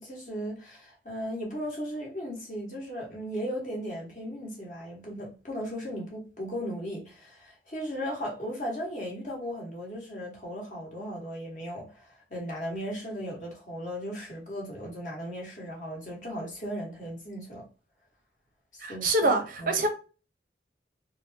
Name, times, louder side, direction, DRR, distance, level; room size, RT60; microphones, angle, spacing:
voice 1, 0.0-17.7 18.7-19.1 19.6-19.7, equal, 40° left, 1.2 m, -36 dB
voice 2, 18.8-19.9, right 2 dB, 45° right, 0.5 m, -25 dB
3.1 x 2.0 x 2.6 m
head